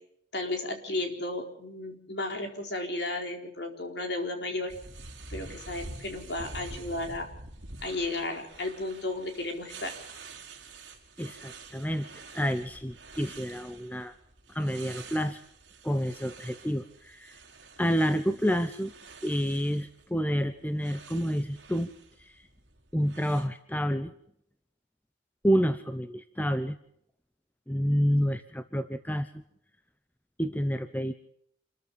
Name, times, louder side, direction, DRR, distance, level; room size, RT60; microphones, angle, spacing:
voice 1, 0.3-4.7 5.3-7.3 7.8-10.0, left 2 dB, 60° left, 4 dB, 4.4 m, -34 dB
sound 1, 4.7-23.5, right 3 dB, 65° right, 3.9 m, -48 dB
voice 2, 11.2-12.1 12.3-14.1 14.5-15.4 15.8-17.4 17.8-18.9 19.2-21.9 22.2-22.4 22.9-24.1 25.4-26.8 27.7-29.3 30.4-31.1, equal, 10° left, 10 dB, 0.9 m, -29 dB
27.0 x 14.0 x 7.1 m, 0.71 s
head